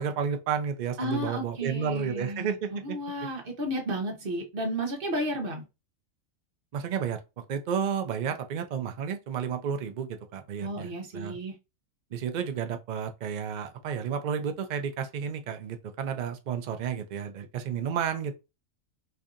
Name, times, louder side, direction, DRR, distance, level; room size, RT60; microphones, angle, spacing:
voice 1, 0.0-3.0 6.7-7.2 7.5-11.4 12.1-18.3, right 7 dB, 90° right, 0.4 m, -31 dB
voice 2, 1.0-5.6 10.6-11.5, equal, 45° right, 1.1 m, -33 dB
4.5 x 2.7 x 2.5 m
omnidirectional pair, 1.4 m